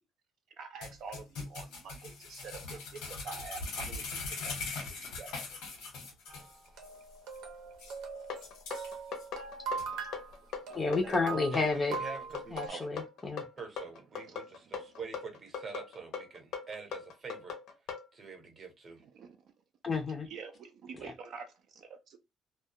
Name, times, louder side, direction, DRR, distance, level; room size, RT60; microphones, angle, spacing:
voice 1, 0.6-5.4 10.7-11.1 12.7-13.0 19.1-19.3 20.3-22.2, right 5 dB, 50° right, 0.3 m, -47 dB
sound 1, 0.8-6.5 6.8-6.9 7.3-7.4 7.8-8.0 8.4-9.2 9.8-9.9, left 4 dB, 85° left, 1.0 m, -41 dB
sound 2, 6.3-12.7, right 5 dB, 80° right, 0.7 m, -41 dB
sound 3, 8.3-18.1, left 6 dB, 65° left, 0.7 m, -40 dB
voice 2, 10.7-12.0 12.5-13.4 19.8-20.3 21.0-21.1, left 3 dB, 15° left, 0.5 m, -31 dB
voice 3, 11.5-12.6 13.6-17.5 18.1-19.0, right 4 dB, 30° right, 0.8 m, -45 dB
2.3 x 2.1 x 2.6 m
cardioid pair, 170°, 0 cm